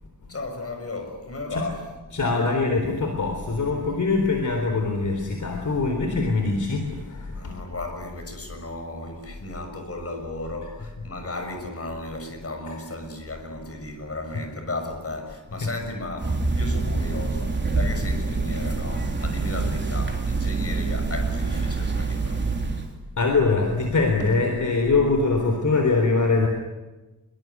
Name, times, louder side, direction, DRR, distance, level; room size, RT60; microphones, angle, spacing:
voice 1, 0.3-1.9 7.3-22.5, left 2 dB, 45° left, 5 dB, 6.4 m, -35 dB
voice 2, 2.1-7.5 10.8-11.1 15.6-15.7 23.2-26.5, left 3 dB, 60° left, 4 dB, 3.9 m, -23 dB
sound 1, 16.2-22.9, right 3 dB, 30° right, 3.4 m, -26 dB
26.0 x 23.0 x 9.7 m, 1.1 s
wide cardioid pair, 145°, 34 cm